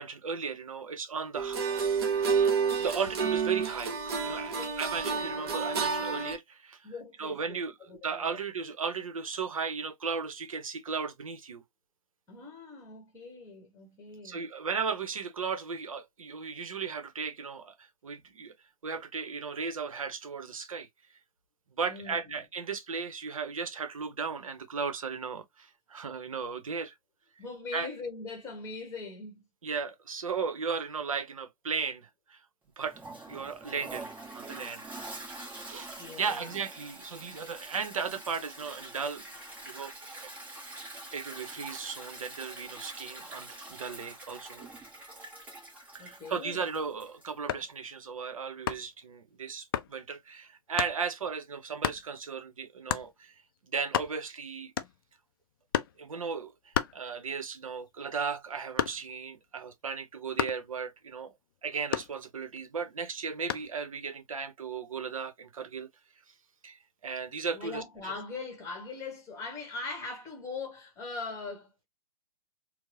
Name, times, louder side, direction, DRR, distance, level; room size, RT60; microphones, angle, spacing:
voice 1, 0.0-2.3 2.8-4.0 4.2-6.9 7.2-7.7 8.0-11.6 14.2-18.5 18.8-20.9 21.7-26.9 27.7-27.9 29.6-32.4 32.8-33.0 33.3-34.8 35.7-39.2 39.6-40.3 40.7-40.8 41.1-44.7 45.9-53.4 53.7-54.7 56.0-61.3 61.6-65.9 66.6-68.1, right 5 dB, 60° right, 0.7 m, -36 dB
sound 1, 1.3-6.4, right 5 dB, 40° right, 0.9 m, -29 dB
voice 2, 6.8-7.6 7.9-8.3 12.3-14.4 21.9-22.4 27.4-29.4 36.0-36.6 46.0-46.7 67.5-71.8, left 4 dB, 15° left, 1.1 m, -41 dB
Toilet flush, 32.8-47.4, right 2 dB, 10° right, 0.9 m, -45 dB
sound 2, 47.3-47.8 48.7-49.0 49.7-49.9 50.8-51.0 51.8-52.1 52.9-53.1 53.6-53.7 53.8-54.4 54.8-55.2 55.7-56.0 56.7-57.5 57.9-59.2 60.4-60.7 61.9-62.6 63.5-63.8, left 10 dB, 35° left, 0.4 m, -32 dB
4.5 x 2.0 x 2.7 m
figure-of-eight pair, 125°, 19 cm